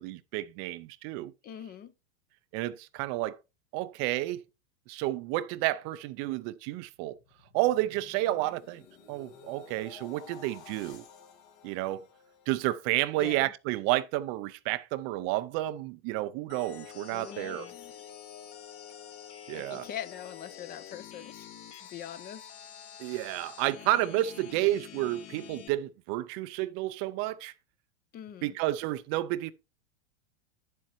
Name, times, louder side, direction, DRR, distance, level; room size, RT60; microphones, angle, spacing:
voice 1, 0.0-1.3 2.5-3.4 3.7-4.4 4.9-7.2 7.5-8.8 9.1-11.0 11.6-12.0 12.5-17.7 19.5-19.9 23.0-27.5 28.4-29.5, right 16 dB, 40° right, 0.5 m, -31 dB
voice 2, 1.4-1.9 13.2-13.5 17.1-17.8 19.5-21.5 21.8-22.4 28.1-28.6, left 10 dB, 25° left, 0.6 m, -43 dB
sound 1, 6.9-13.2 13.6-13.9, left 6 dB, 70° left, 2.2 m, -53 dB
sound 2, 16.5-25.7, left 9 dB, 45° left, 1.4 m, -47 dB
9.3 x 7.5 x 3.0 m
hypercardioid pair, 125°, 34 cm